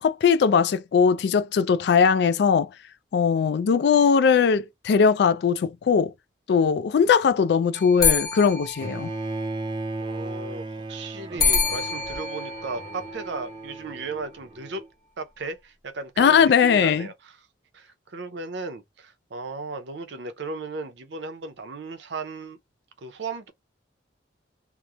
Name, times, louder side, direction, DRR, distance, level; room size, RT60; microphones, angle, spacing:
voice 1, 0.0-2.7 3.1-6.1 6.5-9.1 16.2-17.1, left 6 dB, 60° left, 0.3 m, -20 dB
sound 1, 7.7-9.7 11.4-13.8, left 5 dB, 20° left, 0.8 m, -27 dB
Bowed string instrument, 8.8-14.9, right 2 dB, 25° right, 0.4 m, -35 dB
voice 2, 10.0-14.8 15.2-17.4 17.7-22.6 23.0-23.5, right 3 dB, 70° right, 0.6 m, -36 dB
2.9 x 2.1 x 2.3 m
head